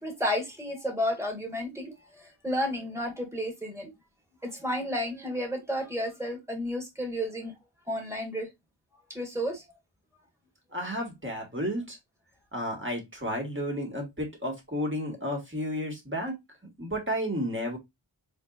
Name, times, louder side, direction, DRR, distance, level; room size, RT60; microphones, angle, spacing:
voice 1, 0.0-3.9 4.4-7.5 7.9-8.5 9.1-9.6, equal, 5° right, 2 dB, 1.9 m, -32 dB
voice 2, 10.7-12.0 12.5-16.3 16.8-17.8, equal, 25° right, 1 dB, 1.9 m, -32 dB
4.5 x 3.6 x 2.5 m, 0.19 s
wide cardioid pair, 50°, 47 cm